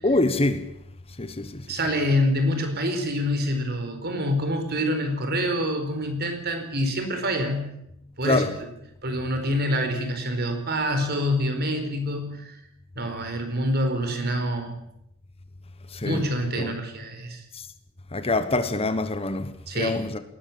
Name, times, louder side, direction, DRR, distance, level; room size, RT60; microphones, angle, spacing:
voice 1, 0.0-0.7 1.2-1.7 8.2-8.5 15.9-16.2 16.6-16.7 17.5-17.7 18.1-20.2, left 2 dB, 25° left, 1.2 m, -25 dB
voice 2, 1.7-7.7 8.2-8.4 9.0-12.6 13.0-14.8 16.0-17.4 19.7-20.0, equal, 50° right, 4.5 m, -26 dB
20.0 x 18.5 x 8.7 m
head